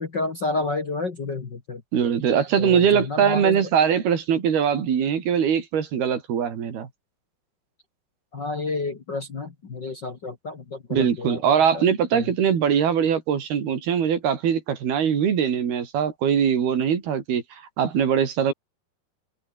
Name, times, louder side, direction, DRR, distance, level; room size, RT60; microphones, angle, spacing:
voice 1, 0.0-1.8 2.6-3.6 8.3-11.9 12.1-12.3, left 3 dB, 35° left, 2.0 m, -30 dB
voice 2, 1.9-6.9 10.9-17.4 17.8-18.5, right 8 dB, 75° right, 5.1 m, -22 dB
omnidirectional pair, 4.6 m